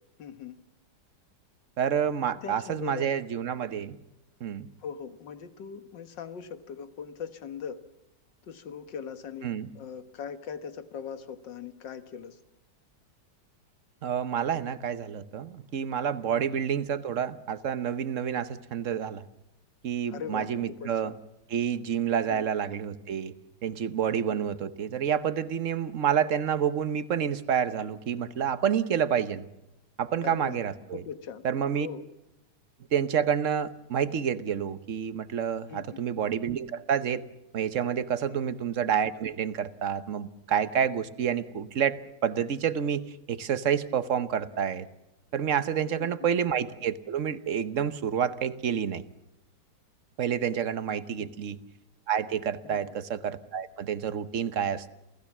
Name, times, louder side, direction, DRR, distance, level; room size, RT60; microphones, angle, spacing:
voice 1, 0.2-0.6 2.4-3.1 4.8-7.8 8.5-12.4 16.3-16.5 20.1-21.1 22.2-22.5 24.1-24.4 30.2-30.6 30.9-31.5 31.8-32.1 35.7-36.0 38.3-38.6 45.8-46.3 51.2-51.3 52.6-52.9, left 7 dB, 85° left, 11 dB, 2.0 m, -41 dB
voice 2, 1.8-4.0 4.4-4.7 9.4-9.7 14.0-19.2 19.8-21.1 21.5-23.3 23.6-29.5 30.0-31.0 31.4-31.9 32.9-37.2 37.5-44.9 45.3-49.0 50.2-51.6 52.1-54.9, right 8 dB, 50° right, 14 dB, 1.2 m, -29 dB
28.0 x 15.5 x 7.3 m, 0.92 s
omnidirectional pair, 1.9 m